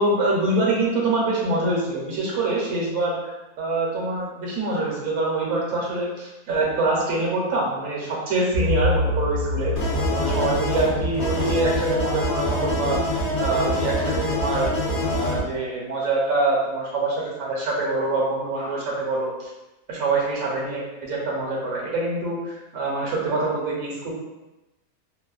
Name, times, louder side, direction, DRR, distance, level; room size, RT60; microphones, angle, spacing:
voice 1, 0.0-9.7 10.1-13.0 13.4-14.7 15.0-19.5 19.9-24.1, right 2 dB, 70° right, -4 dB, 1.2 m, -25 dB
sound 1, 8.5-11.7, left 2 dB, 90° left, 1.2 m, -27 dB
sound 2, 9.8-15.4, left 1 dB, 50° left, 0.9 m, -25 dB
3.0 x 2.1 x 2.3 m, 1.0 s
omnidirectional pair, 1.6 m